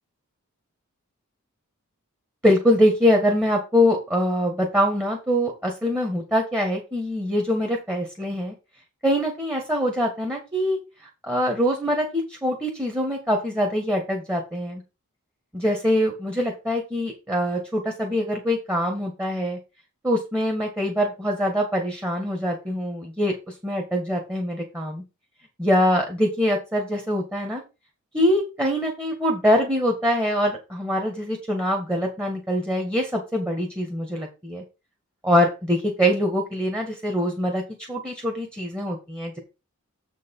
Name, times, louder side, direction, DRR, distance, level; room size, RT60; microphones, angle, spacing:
voice 1, 2.4-8.5 9.0-10.8 11.2-14.8 15.5-19.6 20.0-23.3 23.6-25.0 25.6-27.6 28.1-34.6 35.2-37.6 37.9-39.4, equal, 10° right, 1 dB, 1.8 m, -23 dB
7.6 x 5.4 x 5.6 m, 0.28 s
head